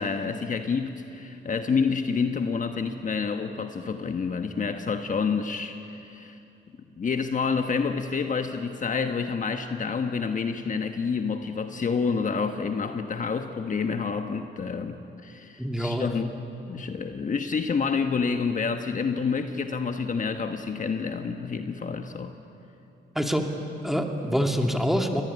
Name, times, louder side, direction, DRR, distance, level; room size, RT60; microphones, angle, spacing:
voice 1, 0.0-6.4 7.0-16.4 16.7-22.3, left 5 dB, 40° left, 7 dB, 1.3 m, -28 dB
voice 2, 15.6-16.1 23.1-23.5 23.8-25.2, equal, ahead, 3 dB, 2.5 m, -25 dB
23.0 x 19.0 x 9.8 m, 2.8 s
cardioid pair, 90°, 20 cm